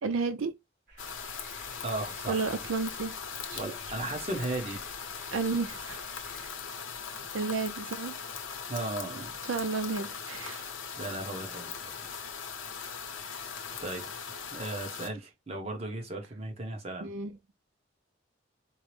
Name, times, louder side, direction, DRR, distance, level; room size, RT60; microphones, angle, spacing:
voice 1, 0.0-0.5 2.3-3.1 3.5-3.6 5.3-6.0 7.3-8.1 9.5-10.6 17.0-17.3, right 4 dB, 85° right, 0.5 m, -32 dB
sound 1, 0.9-6.5, right 2 dB, 50° right, 2.0 m, -54 dB
sound 2, 1.0-15.1, left 6 dB, 75° left, 0.8 m, -40 dB
voice 2, 1.8-2.5 3.6-4.8 8.7-9.3 11.0-12.1 13.2-13.5 13.8-17.1, right 2 dB, 30° right, 0.9 m, -36 dB
4.5 x 2.0 x 3.1 m
head